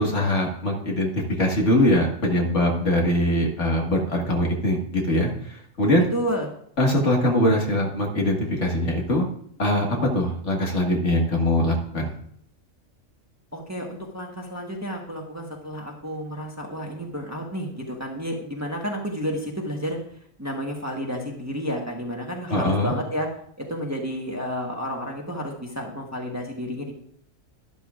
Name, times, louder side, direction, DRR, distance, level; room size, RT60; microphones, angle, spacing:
voice 1, 0.0-6.1 6.8-9.3 9.6-12.1 22.5-22.9, left 1 dB, 60° left, -1 dB, 2.1 m, -22 dB
voice 2, 6.1-6.5 13.5-20.0 20.4-23.3 23.6-26.9, equal, 15° right, 0 dB, 1.3 m, -31 dB
12.0 x 11.5 x 2.5 m, 0.66 s
omnidirectional pair, 1.4 m